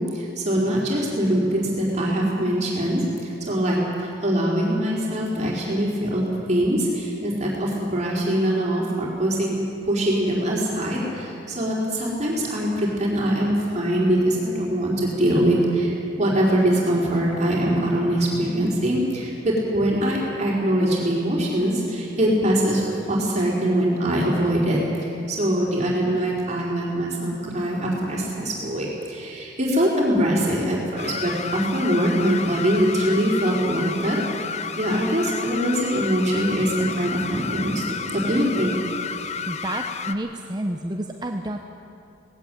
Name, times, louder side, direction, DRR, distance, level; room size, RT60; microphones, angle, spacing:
voice 1, 0.0-9.6 9.9-38.7, right 1 dB, 40° right, -4 dB, 4.4 m, -23 dB
sound 1, 31.0-40.1, left 6 dB, 40° left, 0.8 m, -31 dB
voice 2, 39.1-41.6, right 1 dB, 25° right, 4 dB, 0.9 m, -30 dB
19.0 x 17.0 x 9.2 m, 2.6 s
head